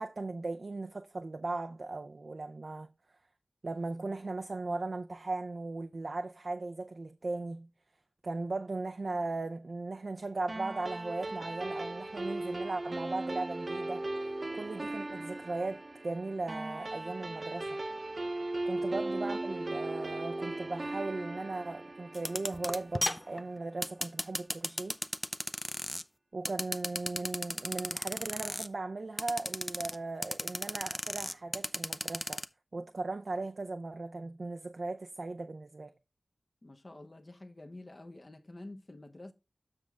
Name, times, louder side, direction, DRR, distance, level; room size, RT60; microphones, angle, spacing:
voice 1, 0.0-2.9 3.6-7.7 8.2-14.1 14.5-17.8 18.7-25.0 26.3-32.4 32.7-35.9, right 3 dB, 65° right, 0.5 m, -37 dB
sound 1, 10.5-23.2, right 2 dB, 50° right, 0.9 m, -38 dB
sound 2, 22.1-26.0 26.4-28.7 29.2-30.0 30.2-32.4, left 1 dB, 20° left, 0.5 m, -34 dB
voice 2, 36.6-39.3, left 2 dB, 45° left, 0.8 m, -49 dB
7.5 x 6.2 x 3.5 m
wide cardioid pair, 50°, 0 cm